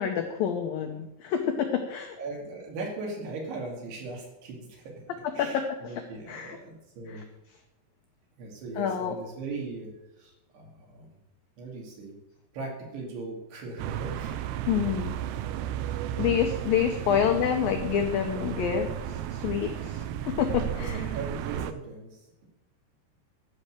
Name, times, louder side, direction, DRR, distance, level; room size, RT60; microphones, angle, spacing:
voice 1, 0.0-2.2 5.4-5.6 6.3-6.6 7.1-7.2 8.8-9.2 14.7-15.2 16.2-21.0, left 8 dB, 80° left, 4 dB, 2.0 m, -28 dB
voice 2, 2.2-4.9 5.3-7.3 8.4-11.2 11.6-12.2 12.5-15.9 16.6-16.7 17.1-17.3 20.8-22.5, right 3 dB, 65° right, -1 dB, 4.6 m, -39 dB
sound 1, 13.8-21.7, right 11 dB, 85° right, 2.4 m, -33 dB
13.0 x 5.7 x 7.5 m, 0.95 s
omnidirectional pair, 5.3 m